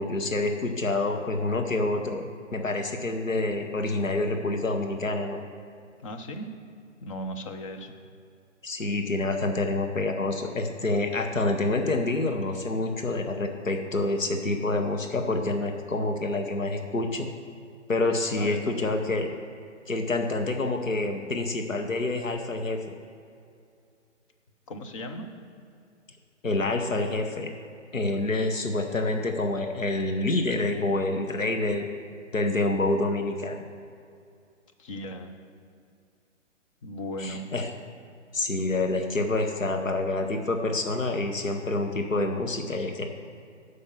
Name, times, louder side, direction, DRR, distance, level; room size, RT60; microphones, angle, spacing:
voice 1, 0.0-2.2 2.5-5.4 8.6-17.3 17.9-19.3 19.9-22.9 26.4-27.5 27.9-31.9 32.3-33.6 37.2-37.7 38.3-43.1, left 2 dB, 90° left, 4 dB, 1.0 m, -27 dB
voice 2, 6.0-6.5 7.0-7.9 18.3-18.7 24.7-25.3 34.8-35.3 36.8-37.4, equal, 25° left, 5 dB, 0.6 m, -36 dB
8.1 x 5.2 x 6.8 m, 2.4 s
figure-of-eight pair, 130°, 38 cm